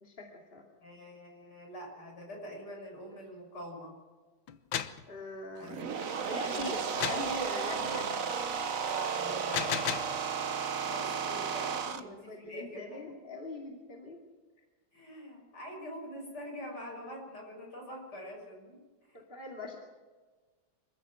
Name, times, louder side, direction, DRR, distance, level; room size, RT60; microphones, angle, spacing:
voice 1, 0.0-0.6 5.1-5.8 6.3-8.1 11.9-14.2 19.1-19.8, left 1 dB, 30° left, 0 dB, 2.6 m, -41 dB
voice 2, 0.8-3.9 5.6-6.7 7.0-7.3 7.9-8.3 8.9-9.8 10.8-13.0 14.9-18.8 19.1-19.2, equal, 55° left, 1 dB, 6.8 m, -45 dB
sound 1, 4.5-5.0 7.0-7.3 9.3-10.2, left 9 dB, 70° left, 1.7 m, -33 dB
sound 2, 5.6-12.0, right 6 dB, 50° right, 1.4 m, -34 dB
25.5 x 15.0 x 7.6 m, 1.4 s
omnidirectional pair, 2.2 m